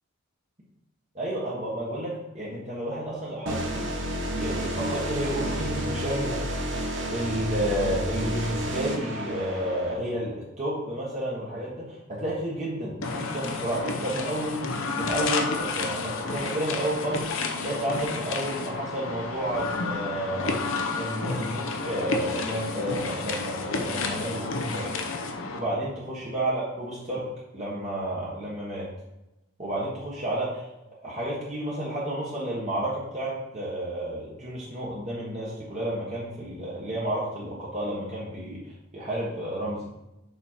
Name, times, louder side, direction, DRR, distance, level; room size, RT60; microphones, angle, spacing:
voice 1, 1.1-6.4 7.1-20.6 20.9-24.9 25.5-27.3 27.5-28.9 29.6-30.7 31.0-38.6 38.9-39.8, right 1 dB, 35° right, -7 dB, 1.4 m, -31 dB
sound 1, 3.5-9.9, right 1 dB, 55° right, 1.1 m, -31 dB
sound 2, 13.0-25.6, left 3 dB, 65° left, 0.8 m, -31 dB
7.2 x 4.2 x 4.5 m, 0.95 s
head